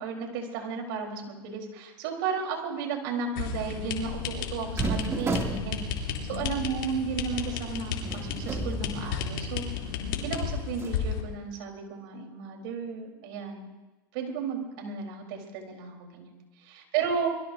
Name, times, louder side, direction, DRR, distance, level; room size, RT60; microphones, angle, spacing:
voice 1, 0.0-9.6 10.2-13.7 14.1-17.3, right 6 dB, 65° right, 3 dB, 3.9 m, -34 dB
sound 1, 3.4-11.2, left 7 dB, 70° left, 3.0 m, -33 dB
sound 2, 4.7-9.6 10.0-10.1 10.7-11.0, right 3 dB, 20° right, 2.4 m, -34 dB
24.5 x 21.5 x 2.7 m, 1.1 s
hypercardioid pair, 95°, 12 cm